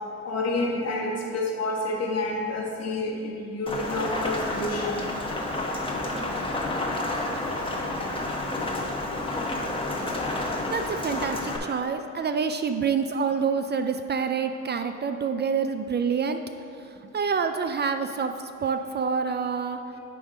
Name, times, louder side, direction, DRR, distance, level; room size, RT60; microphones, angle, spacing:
voice 1, 0.2-5.0 19.9-20.0, left 2 dB, 55° left, -2 dB, 1.6 m, -29 dB
Rain, 3.7-11.6, left 2 dB, 15° left, 1.2 m, -30 dB
voice 2, 10.7-16.4 17.1-18.3 18.6-19.8, right 6 dB, 35° right, 8 dB, 0.4 m, -27 dB
10.0 x 3.5 x 5.0 m, 2.5 s
cardioid pair, 90°, 30 cm